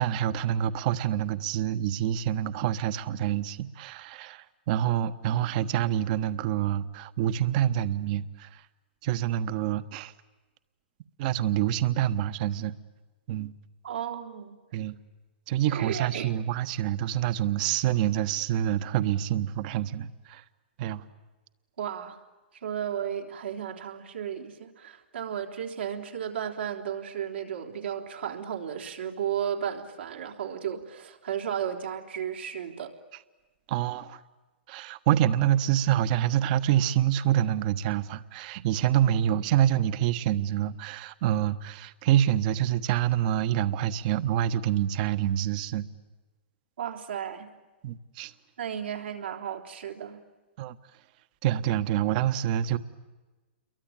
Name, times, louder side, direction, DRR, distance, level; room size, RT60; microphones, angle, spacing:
voice 1, 0.0-8.6 9.0-10.1 11.2-12.7 13.3-13.5 14.7-15.0 15.5-20.4 20.8-21.0 33.7-34.2 34.7-45.9 47.8-48.3 50.6-50.8 51.4-52.8, right 11 dB, 50° right, 12 dB, 1.3 m, -26 dB
voice 2, 13.8-14.6 15.7-16.4 21.8-22.2 22.6-32.9 46.8-47.5 48.6-50.2, right 9 dB, 80° right, 1 dB, 3.6 m, -34 dB
29.0 x 23.0 x 9.0 m, 1.2 s
hypercardioid pair, 125°, 6 cm